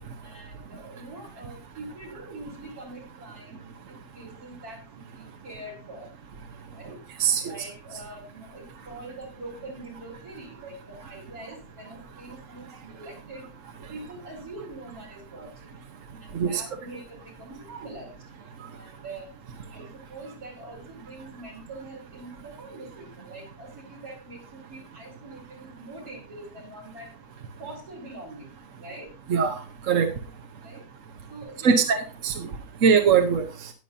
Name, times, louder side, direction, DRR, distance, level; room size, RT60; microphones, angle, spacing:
voice 1, 0.2-6.1 6.7-7.0 7.4-13.5 13.9-15.8 16.2-18.2 18.6-19.3 19.7-27.1 27.6-28.5 28.8-29.1 30.6-30.8 31.3-31.8, right 2 dB, 75° right, -2 dB, 5.1 m, -43 dB
voice 2, 31.6-32.3 32.8-33.4, right 6 dB, 60° right, 5 dB, 1.3 m, -20 dB
18.5 x 7.1 x 2.7 m, 0.35 s
omnidirectional pair, 1.6 m